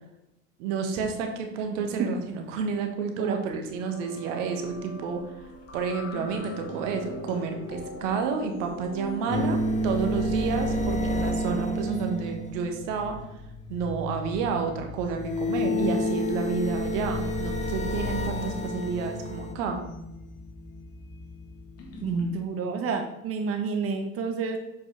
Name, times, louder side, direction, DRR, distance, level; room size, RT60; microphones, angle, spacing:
voice 1, 0.6-5.3 5.7-9.6 9.8-13.2 13.7-19.8, right 5 dB, 70° right, 4 dB, 1.3 m, -30 dB
sound 1, 3.8-22.3, left 2 dB, 40° left, 1.8 m, -41 dB
sound 2, 9.3-12.8 15.1-19.5, left 1 dB, 20° left, 0.9 m, -29 dB
voice 2, 22.0-24.6, right 5 dB, 35° right, 5 dB, 1.0 m, -29 dB
7.1 x 5.2 x 3.3 m, 0.91 s
hypercardioid pair, 75°, 38 cm